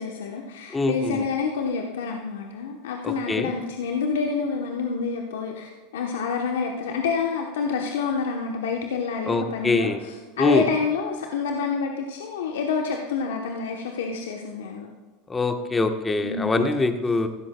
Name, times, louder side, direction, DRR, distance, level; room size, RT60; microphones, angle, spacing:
voice 1, 0.0-14.9 16.2-16.7, left 5 dB, 75° left, 2 dB, 1.0 m, -28 dB
voice 2, 0.7-1.2 3.0-3.5 9.3-10.0 10.4-10.6 15.3-17.3, left 3 dB, 15° left, 6 dB, 1.1 m, -23 dB
15.5 x 13.0 x 2.3 m, 1.4 s
hypercardioid pair, 90°, 0 cm